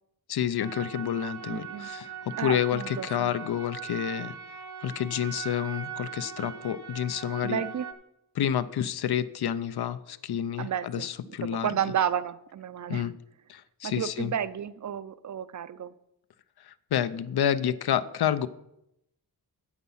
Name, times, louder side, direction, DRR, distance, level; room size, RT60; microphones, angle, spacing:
voice 1, 0.3-4.4 4.8-7.6 8.3-11.7 12.9-13.1 13.5-14.3 16.6-18.5, left 9 dB, 70° left, 15 dB, 0.6 m, -29 dB
sound 1, 0.6-7.9, right 8 dB, 75° right, 1.1 m, -40 dB
voice 2, 1.5-1.9 2.4-3.3 7.4-7.9 10.6-13.1 13.8-15.9, right 9 dB, 45° right, 16 dB, 0.5 m, -32 dB
9.8 x 7.2 x 5.5 m, 0.82 s
wide cardioid pair, 140°, 40 cm